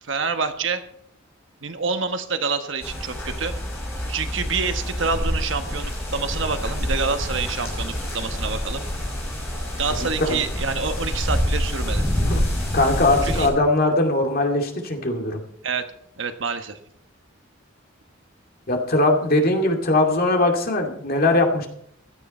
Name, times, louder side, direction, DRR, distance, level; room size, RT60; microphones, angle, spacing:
voice 1, 0.0-0.8 1.6-3.5 4.1-8.8 9.8-12.0 13.2-13.5 15.6-15.8 16.2-16.8, right 5 dB, 60° right, 8 dB, 1.2 m, -27 dB
sound 1, 2.8-13.5, equal, 10° left, 6.9 m, -27 dB
voice 2, 10.0-10.4 12.3-12.5 12.7-15.4 18.7-21.7, left 2 dB, 45° left, 2 dB, 2.5 m, -20 dB
16.0 x 12.0 x 4.3 m, 0.67 s
head